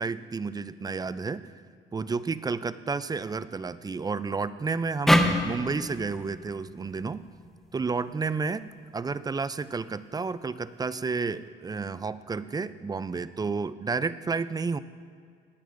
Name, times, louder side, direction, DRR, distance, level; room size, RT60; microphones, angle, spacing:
voice 1, 0.0-1.5 1.9-7.2 7.7-14.8, right 4 dB, 20° right, 14 dB, 0.4 m, -31 dB
sound 1, 5.1-8.3, equal, ahead, 0.8 m, -27 dB
18.0 x 10.0 x 2.6 m, 2.2 s
cardioid pair, 90°, 20 cm